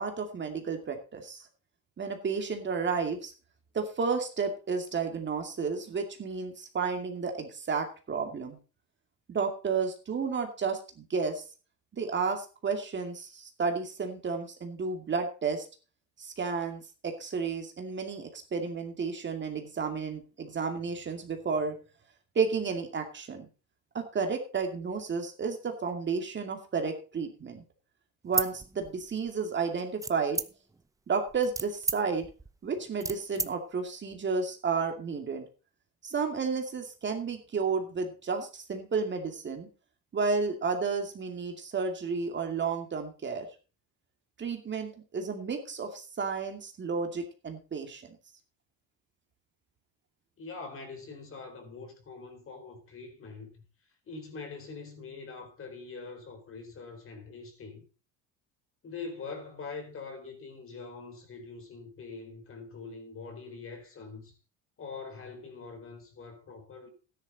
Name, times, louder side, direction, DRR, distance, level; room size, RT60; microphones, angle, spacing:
voice 1, 0.0-1.4 2.0-3.3 3.7-8.6 9.3-11.4 11.9-15.7 16.2-21.8 22.3-23.5 23.9-27.6 28.2-30.4 31.1-32.3 32.6-35.4 36.0-39.7 40.1-43.5 44.4-48.0, right 5 dB, 30° right, 2.4 m, -32 dB
sound 1, 28.2-29.3 30.0-30.8 31.3-33.5, right 3 dB, 10° right, 0.7 m, -33 dB
voice 2, 50.4-53.6 54.1-57.9 58.8-64.4 64.8-66.9, left 4 dB, 40° left, 4.0 m, -43 dB
12.5 x 10.5 x 4.1 m
cardioid pair, 115°, 35 cm